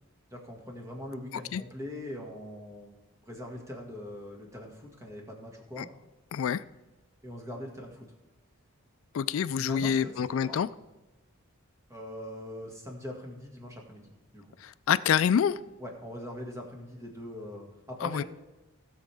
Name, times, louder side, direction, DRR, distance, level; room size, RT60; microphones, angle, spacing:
voice 1, 0.3-3.0 3.2-5.9 7.2-8.1 9.6-10.6 11.9-14.5 15.8-18.2, left 1 dB, 15° right, 1.8 m, -42 dB
voice 2, 6.3-6.6 9.1-10.7 14.6-15.6 18.0-18.2, left 8 dB, 65° left, 0.3 m, -27 dB
18.5 x 6.3 x 3.5 m
head